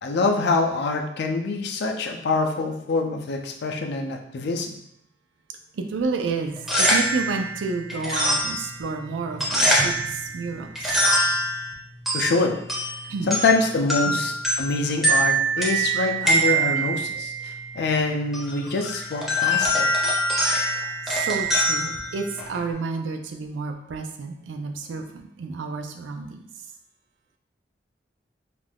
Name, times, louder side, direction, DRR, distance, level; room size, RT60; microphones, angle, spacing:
voice 1, 0.0-4.8 12.1-12.5 13.3-19.9, left 3 dB, 60° left, 3 dB, 0.4 m, -25 dB
voice 2, 5.7-11.3 13.1-13.3 14.0-14.2 15.1-15.2 15.6-16.5 16.7-16.9 17.1-17.2 21.1-26.4, right 4 dB, 85° right, 5 dB, 0.4 m, -31 dB
sound 1, 6.5-22.7, right 1 dB, ahead, 0.5 m, -25 dB
2.5 x 2.2 x 3.3 m, 0.74 s
head